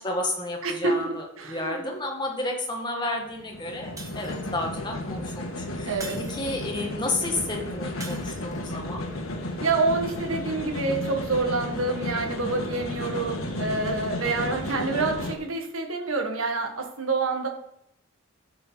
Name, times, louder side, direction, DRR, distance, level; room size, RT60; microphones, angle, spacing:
voice 1, 0.0-6.0 6.3-9.0 13.1-13.4, left 2 dB, 20° left, 1 dB, 1.8 m, -31 dB
voice 2, 0.6-1.9 5.9-6.2 9.6-17.5, right 3 dB, 85° right, 3 dB, 1.7 m, -27 dB
sound 1, 3.2-15.3, left 1 dB, 85° left, 1.7 m, -33 dB
Shatter, 4.0-4.7 6.0-6.8 8.0-8.8, right 3 dB, 15° right, 1.4 m, -42 dB
13.0 x 6.8 x 4.0 m, 0.80 s
head